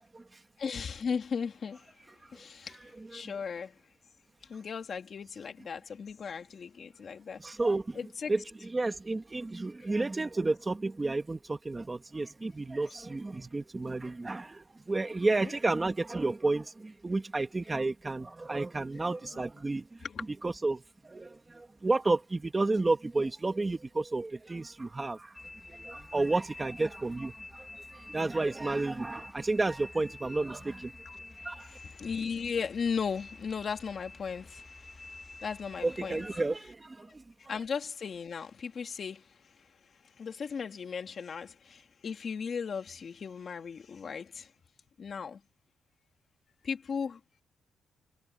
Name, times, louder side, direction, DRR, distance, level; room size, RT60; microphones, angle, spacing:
voice 1, 0.6-1.9 2.3-3.8 4.4-7.6 7.9-8.3 15.3-15.5 18.9-19.4 20.0-20.3 31.0-36.3 37.1-37.2 37.5-44.5 45.0-45.4 46.6-47.4, left 6 dB, 40° left, 2.9 m, -37 dB
voice 2, 7.4-8.0 8.3-20.0 20.4-25.4 25.7-30.9 31.4-31.7 35.8-37.2, right 2 dB, 15° right, 1.7 m, -31 dB
sound 1, 25.3-36.4, left 2 dB, 15° left, 2.1 m, -49 dB
wide cardioid pair, 165°, 0 cm